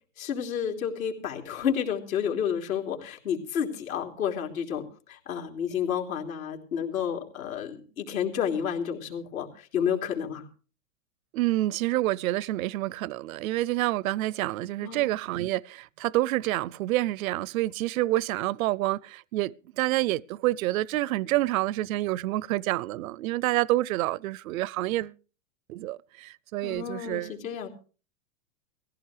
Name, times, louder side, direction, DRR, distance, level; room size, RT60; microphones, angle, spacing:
voice 1, 0.2-10.4 14.8-15.1 26.6-27.7, left 8 dB, 75° left, 3.6 m, -30 dB
voice 2, 11.3-25.1 25.7-27.3, right 17 dB, 75° right, 0.6 m, -28 dB
18.0 x 15.5 x 3.3 m
supercardioid pair, 135°, 42 cm